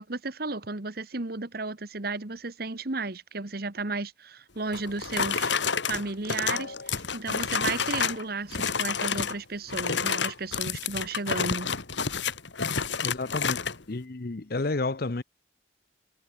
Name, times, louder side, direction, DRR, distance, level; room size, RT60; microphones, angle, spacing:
voice 1, 0.0-5.5 5.8-11.7, right 3 dB, 55° right, 1.5 m, -34 dB
sound 1, 4.7-8.2 8.5-9.4 9.7-13.8, left 6 dB, 70° left, 2.2 m, -29 dB
voice 2, 12.7-13.6 13.9-15.2, left 3 dB, 50° left, 0.8 m, -31 dB
head